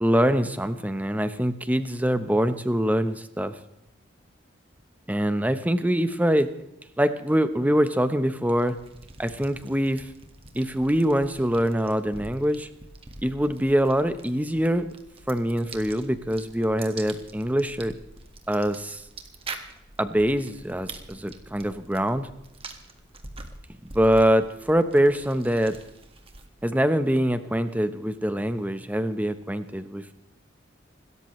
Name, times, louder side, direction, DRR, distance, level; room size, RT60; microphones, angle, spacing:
voice 1, 0.0-3.6 5.1-6.5 7.0-8.8 9.2-10.1 10.5-12.7 13.2-14.9 15.3-17.9 18.5-19.0 20.0-22.3 23.9-25.8 26.6-30.1, equal, 10° right, 10 dB, 0.9 m, -24 dB
sound 1, 8.5-26.7, right 3 dB, 30° right, 1.8 m, -45 dB
27.5 x 14.0 x 3.2 m, 0.83 s
head